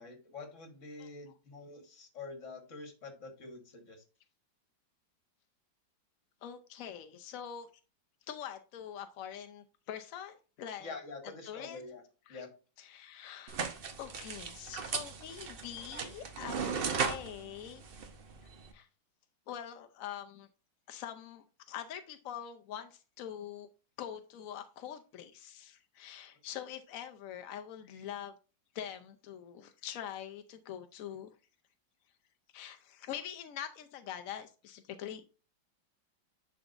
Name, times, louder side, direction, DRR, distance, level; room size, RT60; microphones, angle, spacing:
voice 1, 0.0-4.0 10.8-12.0 12.3-12.5, left 3 dB, 40° left, 4 dB, 1.8 m, -46 dB
voice 2, 6.4-7.7 8.3-11.0 11.4-11.8 12.3-12.5 12.8-13.6 14.0-17.8 18.7-18.9 19.5-20.5 20.9-23.7 24.0-28.3 28.7-31.3 32.5-35.3, left 10 dB, 75° left, 7 dB, 0.8 m, -44 dB
sound 1, 13.5-18.7, right 5 dB, 55° right, 0.6 m, -37 dB
10.5 x 4.0 x 2.5 m, 0.34 s
omnidirectional pair, 2.1 m